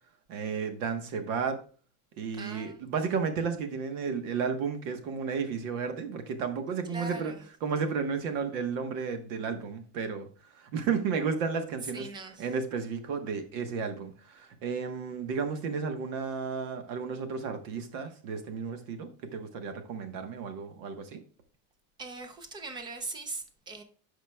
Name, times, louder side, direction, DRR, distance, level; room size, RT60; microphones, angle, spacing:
voice 1, 0.3-1.6 2.2-7.3 7.6-10.3 10.6-12.1 12.4-21.2, right 5 dB, 65° right, 1.3 m, -33 dB
voice 2, 2.3-2.8 6.9-7.4 11.9-12.5 22.0-23.8, right 3 dB, 10° right, 0.4 m, -40 dB
14.0 x 5.2 x 2.3 m
cardioid pair, 165°, 40 cm